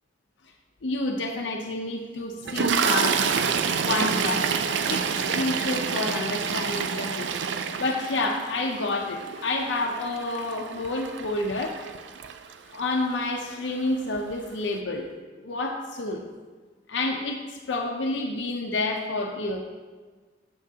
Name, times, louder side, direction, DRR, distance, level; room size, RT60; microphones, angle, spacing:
voice 1, 0.8-3.2 3.8-4.5 4.9-7.3 7.8-11.8 12.7-15.1 15.4-16.2 16.9-19.6, left 2 dB, 90° left, 2 dB, 0.7 m, -29 dB
Toilet flush, 2.5-12.8 13.7-13.9 14.1-14.3, right 6 dB, 75° right, 0.4 m, -28 dB
8.4 x 7.8 x 2.8 m, 1.4 s
head